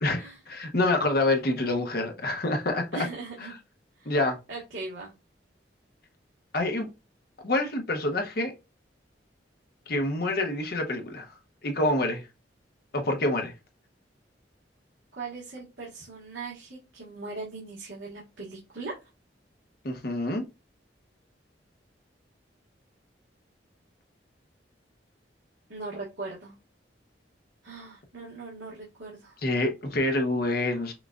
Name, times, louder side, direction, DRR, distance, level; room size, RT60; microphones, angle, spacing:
voice 1, 0.0-3.1 3.4-3.5 4.1-4.4 6.5-6.9 7.4-8.5 9.9-11.3 11.6-12.2 12.9-13.5 19.8-20.5 29.4-30.9, left 2 dB, 55° left, 0.9 m, -27 dB
voice 2, 2.9-3.5 4.0-4.1 4.5-5.1 15.1-18.9 25.7-26.5 27.6-29.4, right 3 dB, 85° right, 1.4 m, -39 dB
5.8 x 2.4 x 2.4 m
head